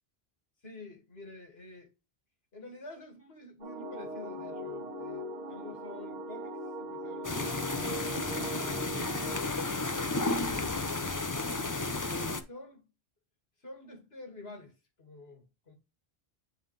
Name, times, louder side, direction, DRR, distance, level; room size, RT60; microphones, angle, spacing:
voice 1, 0.6-1.9 2.5-10.3 12.4-12.9 13.6-15.7, left 2 dB, 70° left, 2.6 m, -50 dB
sound 1, 3.6-9.4, right 1 dB, 45° right, 1.6 m, -40 dB
sound 2, 7.2-12.4, left 3 dB, 20° left, 0.6 m, -32 dB
9.3 x 3.6 x 3.4 m
omnidirectional pair, 1.1 m